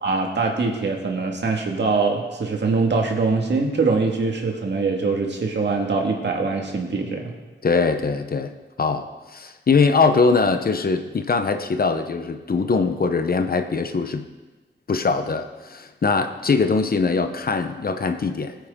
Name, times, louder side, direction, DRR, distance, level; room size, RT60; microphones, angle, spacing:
voice 1, 0.0-7.3, right 4 dB, 65° right, 1 dB, 2.0 m, -23 dB
voice 2, 7.6-8.5 8.8-14.2 14.9-18.5, left 4 dB, 50° left, 8 dB, 0.9 m, -22 dB
20.5 x 9.3 x 3.7 m, 1.3 s
wide cardioid pair, 120°, 20 cm